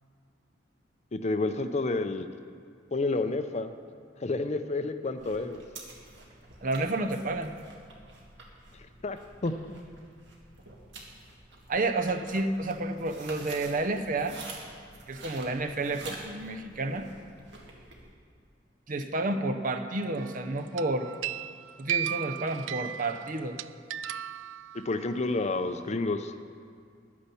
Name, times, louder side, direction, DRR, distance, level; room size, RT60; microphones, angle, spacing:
voice 1, 1.1-2.3 2.9-3.7 4.2-5.6 9.0-9.6 24.7-26.3, left 3 dB, 35° left, 9 dB, 0.6 m, -30 dB
sound 1, 5.2-18.1, right 2 dB, 65° right, 1.9 m, -48 dB
voice 2, 6.6-7.5 11.7-14.4 15.1-17.1 18.9-21.1 21.8-23.6, right 2 dB, 45° right, 7 dB, 0.7 m, -30 dB
sound 2, 20.2-20.5 20.8-25.2, right 11 dB, 85° right, 0.3 m, -36 dB
10.0 x 9.8 x 7.0 m, 2.2 s
head